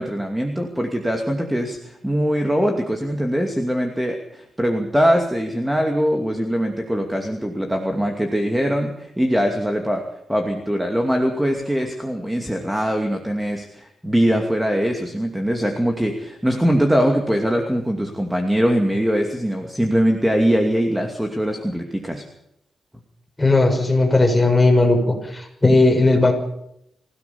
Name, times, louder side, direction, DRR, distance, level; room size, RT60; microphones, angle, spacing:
voice 1, 0.0-22.2, equal, 5° right, 3 dB, 2.6 m, -22 dB
voice 2, 23.4-26.3, left 2 dB, 10° left, 1 dB, 6.5 m, -16 dB
24.5 x 17.0 x 7.1 m, 0.76 s
cardioid pair, 105°, 0 cm